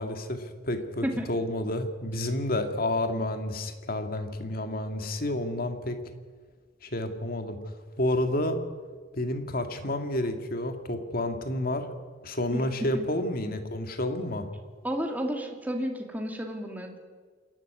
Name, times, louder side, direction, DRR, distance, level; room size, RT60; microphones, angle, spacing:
voice 1, 0.0-6.0 6.8-7.6 8.0-8.6 9.1-11.9 12.2-14.5, left 1 dB, 50° left, 7 dB, 1.9 m, -30 dB
voice 2, 12.5-13.1 14.8-17.0, equal, 10° right, 2 dB, 2.3 m, -32 dB
27.0 x 11.5 x 9.6 m, 1.5 s
head